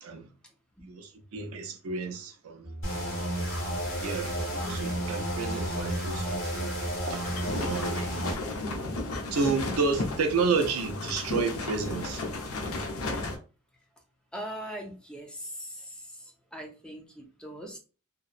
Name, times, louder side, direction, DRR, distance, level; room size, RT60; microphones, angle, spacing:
voice 1, 0.0-0.3 0.8-2.7 3.6-6.7 7.1-7.2 7.6-8.2 9.3-12.2, right 4 dB, 85° right, 0.5 m, -31 dB
sound 1, 2.6-7.7, right 1 dB, 40° left, 1.1 m, -40 dB
sound 2, 2.8-8.4, equal, 60° left, 1.3 m, -32 dB
sound 3, 7.2-13.4, left 2 dB, 85° left, 0.5 m, -34 dB
voice 2, 14.3-17.8, equal, 5° left, 0.4 m, -41 dB
2.8 x 2.0 x 2.4 m
head